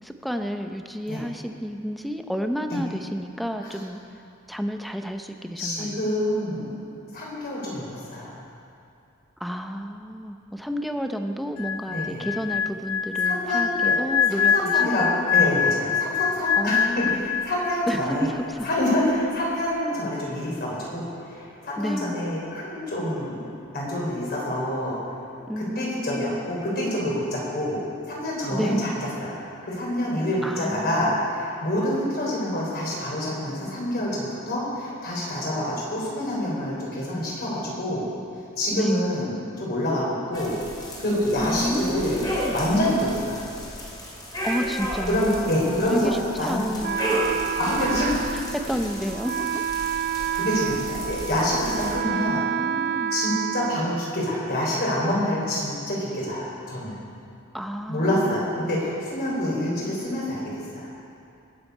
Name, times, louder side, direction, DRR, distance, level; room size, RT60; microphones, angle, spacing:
voice 1, 0.0-4.0 4.5-6.1 9.4-15.1 16.6-17.0 17.9-18.7 21.8-22.2 25.5-26.5 28.5-29.0 30.4-31.3 38.7-39.1 41.4-42.6 44.4-47.5 48.3-49.9 52.0-53.1 57.5-58.7, equal, ahead, 5 dB, 0.6 m, -31 dB
voice 2, 5.6-6.7 7.1-8.3 11.9-12.2 13.3-14.0 14.3-18.3 18.6-23.4 23.7-25.0 25.6-27.8 28.1-28.9 29.2-29.3 29.6-38.0 38.6-40.5 41.0-42.3 42.5-43.4 45.1-46.6 47.6-48.3 50.3-52.4 53.1-57.0 57.9-60.9, left 1 dB, 50° left, -5 dB, 4.1 m, -27 dB
sound 1, 11.6-17.9 18.2-18.5, left 7 dB, 70° left, 0.4 m, -24 dB
sound 2, 40.3-52.0, equal, 20° left, 2.8 m, -33 dB
Wind instrument woodwind instrument, 46.8-54.6, right 9 dB, 50° right, 0.3 m, -29 dB
20.5 x 7.7 x 5.4 m, 2.5 s
head